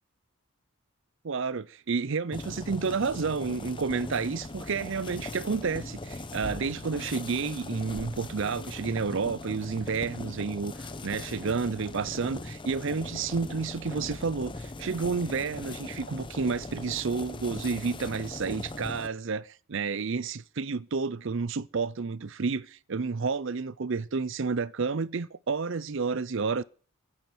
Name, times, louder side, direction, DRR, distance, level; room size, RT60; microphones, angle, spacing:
voice 1, 1.2-26.6, right 5 dB, 60° right, 0.6 m, -30 dB
sound 1, 2.3-19.1, left 2 dB, 20° left, 0.9 m, -40 dB
16.0 x 9.7 x 6.1 m
head